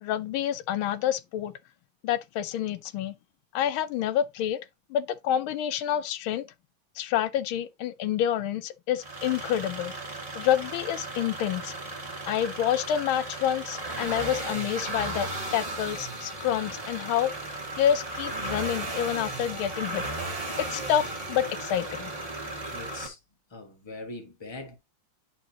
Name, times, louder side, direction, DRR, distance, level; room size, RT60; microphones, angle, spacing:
voice 1, 0.0-1.5 2.0-3.2 3.5-4.6 4.9-6.5 7.0-9.9 10.3-11.7 12.3-17.3 17.8-20.0 20.6-22.1, left 10 dB, 85° left, 1.5 m, -28 dB
sound 1, 9.0-23.1, right 2 dB, 20° right, 1.6 m, -35 dB
voice 2, 22.7-23.2 23.5-24.8, left 2 dB, 15° left, 1.2 m, -41 dB
10.5 x 4.2 x 2.8 m
omnidirectional pair, 2.2 m